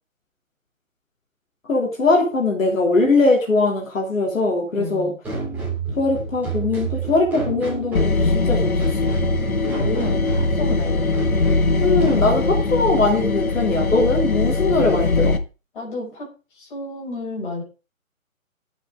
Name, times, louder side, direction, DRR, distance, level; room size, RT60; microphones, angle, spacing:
voice 1, 1.7-5.1 6.0-9.1 11.8-15.3, left 3 dB, 65° left, -1 dB, 3.4 m, -21 dB
voice 2, 4.7-5.2 9.8-11.1 15.7-17.6, left 2 dB, 40° left, 0 dB, 5.5 m, -31 dB
sound 1, 5.2-12.3, right 4 dB, 5° right, 3.3 m, -29 dB
sound 2, 7.9-15.4, left 3 dB, 85° left, 1.7 m, -21 dB
11.5 x 8.3 x 4.9 m, 0.32 s
figure-of-eight pair, 155°, 42 cm